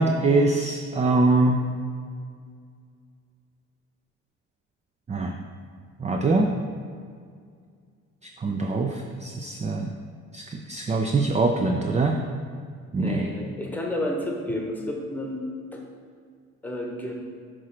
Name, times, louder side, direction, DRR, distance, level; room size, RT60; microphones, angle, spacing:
voice 1, 0.0-1.6 5.1-5.3 6.0-6.5 8.4-9.9 10.3-12.2 12.9-13.2, right 3 dB, 25° right, 3 dB, 0.4 m, -23 dB
voice 2, 12.9-15.4 15.7-15.8 16.6-17.1, left 1 dB, 5° left, 0 dB, 1.1 m, -31 dB
6.1 x 3.2 x 5.8 m, 2.1 s
cardioid pair, 90°, 30 cm